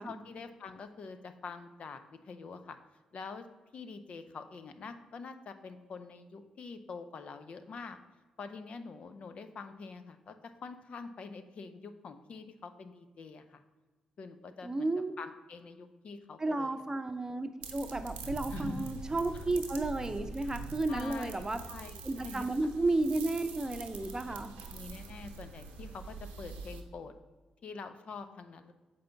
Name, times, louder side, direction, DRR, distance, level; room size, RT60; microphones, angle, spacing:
voice 1, 0.0-2.0 2.3-2.8 3.1-3.5 3.7-8.0 8.4-13.6 14.2-14.9 15.2-16.8 18.5-18.9 19.3-19.4 20.9-22.5 24.7-27.1 27.6-28.7, left 4 dB, 55° left, 9 dB, 0.6 m, -45 dB
voice 2, 14.6-15.1 16.4-21.6 22.0-24.5, right 2 dB, 25° right, 9 dB, 0.7 m, -33 dB
sound 1, 17.6-26.8, right 4 dB, 80° right, 0.7 m, -44 dB
6.8 x 5.0 x 3.5 m, 1.3 s
hypercardioid pair, 40°, 2 cm